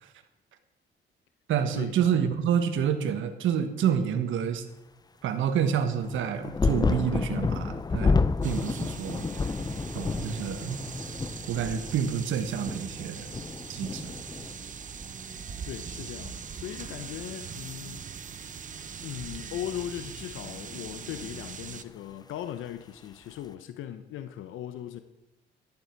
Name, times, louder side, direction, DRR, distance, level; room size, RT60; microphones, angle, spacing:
voice 1, 1.5-4.6 5.2-8.2 8.4-9.2 9.9-10.8 11.5-13.3 13.7-14.1, right 8 dB, 80° right, 8 dB, 1.4 m, -28 dB
sound 1, 6.0-15.1 15.4-16.3 17.2-17.3, left 4 dB, 20° left, 0.5 m, -30 dB
sound 2, 8.4-21.8, right 6 dB, 40° right, 0.8 m, -41 dB
voice 2, 15.6-18.1 19.0-25.0, left 11 dB, 85° left, 9 dB, 0.8 m, -38 dB
14.5 x 11.5 x 4.6 m, 0.96 s
cardioid pair, 90°, 20 cm